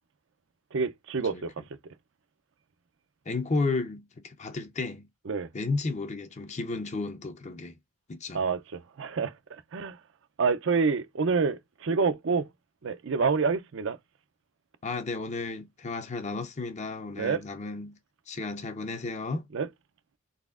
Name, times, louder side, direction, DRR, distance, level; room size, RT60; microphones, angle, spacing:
voice 1, 0.7-1.7 5.3-5.5 8.3-10.0 10.4-12.5 12.8-14.0 17.2-17.4 19.5-19.7, right 5 dB, 60° right, 0.5 m, -28 dB
voice 2, 3.3-5.1 5.5-7.8 8.1-8.4 14.8-18.0 18.3-19.5, left 3 dB, 35° left, 0.6 m, -33 dB
4.0 x 3.4 x 2.4 m
head